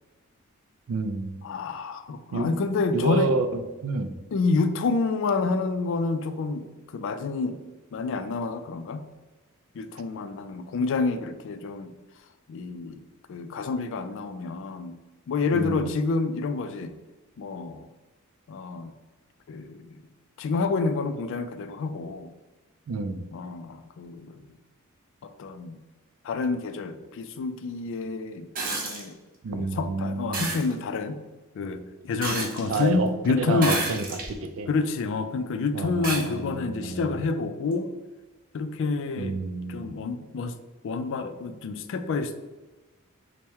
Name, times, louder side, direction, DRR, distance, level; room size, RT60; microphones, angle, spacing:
voice 1, 0.9-1.3 2.3-2.6 2.9-4.2 15.5-15.9 22.9-23.2 29.4-30.5 32.7-33.1 33.4-34.1 34.4-34.7 35.7-37.2 39.2-39.9, right 3 dB, 70° right, 9 dB, 0.4 m, -29 dB
voice 2, 1.4-3.4 4.3-7.6 7.9-9.1 9.7-11.9 12.5-13.0 13.3-15.0 15.3-16.9 17.4-17.9 18.5-18.9 19.5-20.1 20.4-22.3 23.3-24.6 25.2-25.8 26.2-28.5 28.8-29.2 29.5-31.2 31.5-33.9 34.7-37.9 38.5-39.4 39.7-40.6 40.8-42.4, left 4 dB, 65° left, 9 dB, 0.3 m, -28 dB
sound 1, 28.5-29.0 30.3-30.6 32.2-32.8 33.6-34.3 35.0-35.1 36.0-36.2 37.7-37.8, right 3 dB, 45° right, 0.8 m, -30 dB
4.4 x 2.1 x 3.4 m, 1.2 s
head